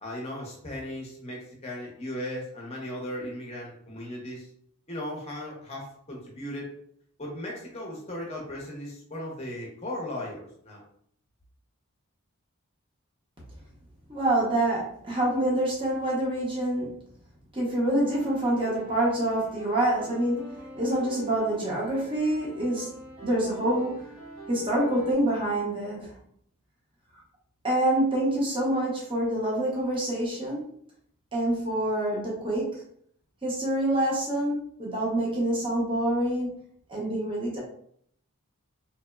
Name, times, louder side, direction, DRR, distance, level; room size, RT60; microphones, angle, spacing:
voice 1, 0.0-4.5 4.9-6.7 7.2-10.8, left 1 dB, 30° left, -2 dB, 0.6 m, -37 dB
voice 2, 14.1-17.0 17.5-24.2 24.5-26.2 27.6-30.7 31.3-32.8 33.4-36.6 36.9-37.6, right 1 dB, 25° right, -5 dB, 0.6 m, -26 dB
sound 1, 18.0-25.1, right 3 dB, 80° right, 1.2 m, -45 dB
2.8 x 2.0 x 2.2 m, 0.66 s
head